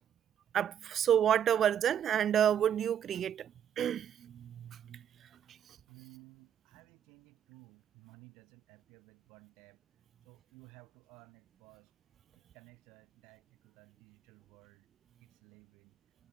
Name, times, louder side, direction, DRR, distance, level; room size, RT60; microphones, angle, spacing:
voice 1, 0.5-3.5 3.8-4.1 4.3-4.4, right 9 dB, 55° right, 0.3 m, -28 dB
voice 2, 5.4-11.9 12.3-14.9 15.2-16.0, right 25 dB, 85° right, 2.9 m, -59 dB
cardioid pair, 95°, 0 cm